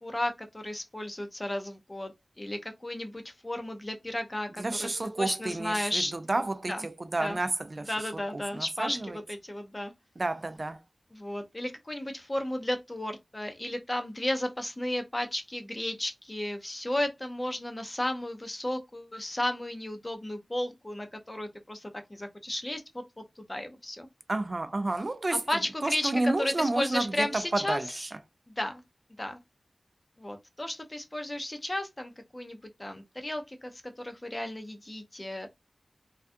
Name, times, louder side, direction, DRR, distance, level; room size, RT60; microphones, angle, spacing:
voice 1, 0.0-4.9 5.2-6.1 6.7-6.8 7.2-7.4 7.9-9.9 11.1-23.0 23.4-24.1 25.3-28.0 28.5-28.8 29.2-29.4 30.2-35.5, left 1 dB, 25° left, 0.6 m, -34 dB
voice 2, 4.6-7.9 8.3-9.2 10.2-10.8 24.3-25.4 25.8-28.1, right 2 dB, 50° right, 0.3 m, -30 dB
2.3 x 2.2 x 2.5 m
wide cardioid pair, 60°, 0 cm